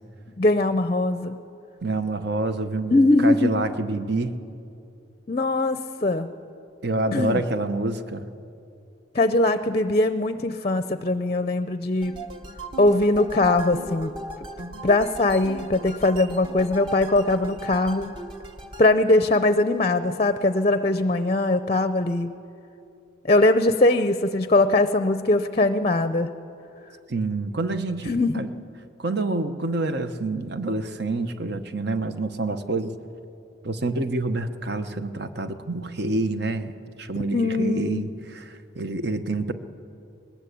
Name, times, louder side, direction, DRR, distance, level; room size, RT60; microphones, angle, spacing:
voice 1, 0.4-1.4 2.9-3.7 5.3-6.3 7.1-7.4 9.1-12.1 12.8-14.1 14.8-18.1 18.8-22.3 23.2-26.3 28.1-28.4 37.3-38.1, left 2 dB, 30° left, 11 dB, 0.6 m, -21 dB
voice 2, 1.8-4.3 6.8-8.2 27.1-28.5 29.0-33.0 33.6-36.7 37.0-39.5, right 2 dB, 55° right, 9 dB, 1.1 m, -27 dB
sound 1, 12.0-18.9, right 1 dB, 25° right, 1.2 m, -37 dB
20.5 x 20.0 x 8.5 m, 2.7 s
head